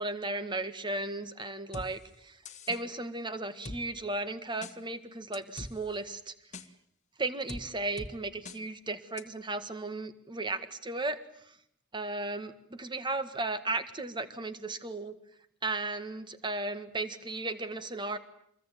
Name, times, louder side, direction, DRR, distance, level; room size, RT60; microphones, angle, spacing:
voice 1, 0.0-2.4 2.7-6.3 7.2-11.2 11.9-15.1 15.6-18.2, right 2 dB, 20° right, 11 dB, 1.8 m, -35 dB
sound 1, 1.7-1.9 2.5-2.8 3.7-3.8 4.6-4.7 5.3-5.7 6.5-6.7 7.5-7.6 8.0-8.1 8.5-8.6 9.2-9.3, left 2 dB, 35° left, 1.6 m, -41 dB
26.5 x 22.0 x 9.3 m, 0.72 s
head